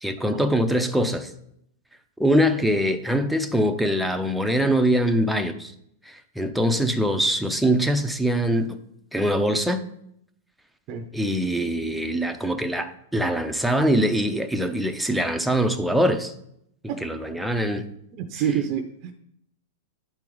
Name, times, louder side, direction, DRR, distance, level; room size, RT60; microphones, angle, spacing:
voice 1, 0.0-1.3 2.2-5.7 6.1-8.8 9.1-9.8 11.1-16.3 17.0-17.8, equal, ahead, 0.6 m, -23 dB
voice 2, 18.1-19.1, right 8 dB, 40° right, 0.6 m, -27 dB
10.5 x 4.5 x 3.9 m
hypercardioid pair, 135°, 0 cm